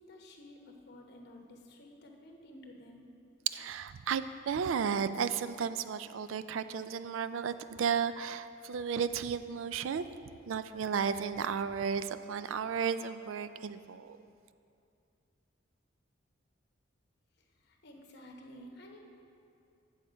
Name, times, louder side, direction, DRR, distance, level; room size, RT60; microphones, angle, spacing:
voice 1, 0.0-3.0 17.6-19.0, left 1 dB, 55° left, 1 dB, 1.0 m, -52 dB
voice 2, 3.5-10.1 10.5-14.2, right 6 dB, 80° right, 12 dB, 0.4 m, -33 dB
9.1 x 7.1 x 5.1 m, 2.6 s
head